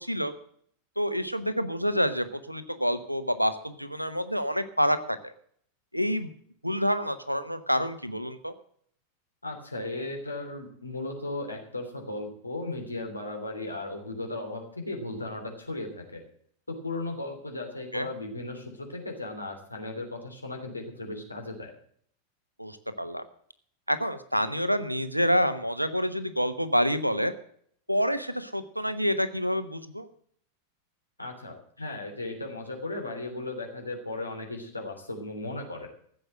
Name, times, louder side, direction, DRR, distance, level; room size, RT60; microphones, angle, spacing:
voice 1, 0.0-0.3 1.0-5.3 5.9-6.3 6.6-8.5 17.9-18.1 22.6-23.2 23.9-27.3 27.9-30.1, equal, 90° right, 12 dB, 1.0 m, -27 dB
voice 2, 9.4-16.2 16.7-21.7 31.2-35.9, left 2 dB, 85° left, 2 dB, 3.2 m, -36 dB
14.5 x 7.8 x 7.6 m, 0.63 s
figure-of-eight pair, 90°, 0 cm